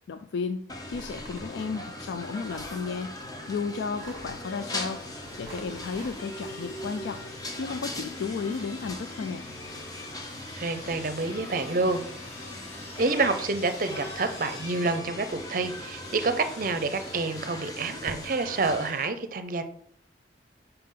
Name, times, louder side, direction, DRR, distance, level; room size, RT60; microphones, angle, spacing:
voice 1, 0.1-3.1 3.5-5.0 5.4-7.2 7.6-9.5, left 5 dB, 75° left, 8 dB, 0.4 m, -33 dB
sound 1, 0.7-18.9, left 1 dB, 20° left, 0.7 m, -39 dB
sound 2, 0.9-1.5 2.5-2.8 3.8-4.4 5.2-6.2, right 2 dB, 15° right, 1.3 m, -47 dB
Sawing, 4.4-19.1, left 2 dB, 35° left, 1.6 m, -48 dB
voice 2, 10.6-12.0 13.0-19.6, right 3 dB, 50° right, 10 dB, 0.6 m, -28 dB
5.7 x 5.6 x 3.7 m, 0.67 s
head